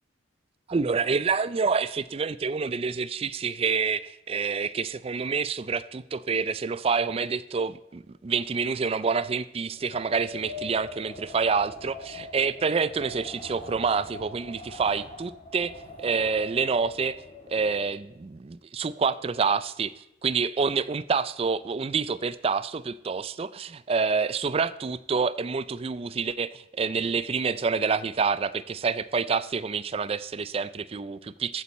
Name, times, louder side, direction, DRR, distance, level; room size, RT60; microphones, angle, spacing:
voice 1, 0.7-15.7 16.0-17.2 17.5-31.6, right 5 dB, 30° right, 16 dB, 0.3 m, -27 dB
Wind, 9.7-18.1, left 2 dB, 30° left, 2.4 m, -43 dB
14.0 x 8.7 x 4.2 m, 0.85 s
head